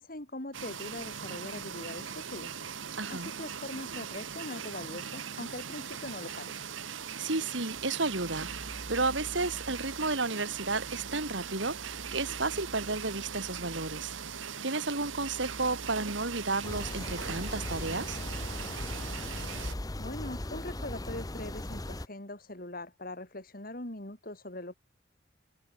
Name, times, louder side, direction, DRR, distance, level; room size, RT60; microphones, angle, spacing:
voice 1, 0.0-2.5 3.1-6.6 20.0-24.7, left 1 dB, 50° left, 3.2 m, -41 dB
sound 1, 0.5-19.7, right 7 dB, 90° right, 1.3 m, -40 dB
voice 2, 3.0-3.3 7.2-18.2, right 3 dB, 75° right, 3.5 m, -33 dB
sound 2, 7.7-19.1, right 1 dB, 35° right, 2.1 m, -50 dB
sound 3, 16.6-22.1, left 1 dB, 20° left, 0.8 m, -38 dB
head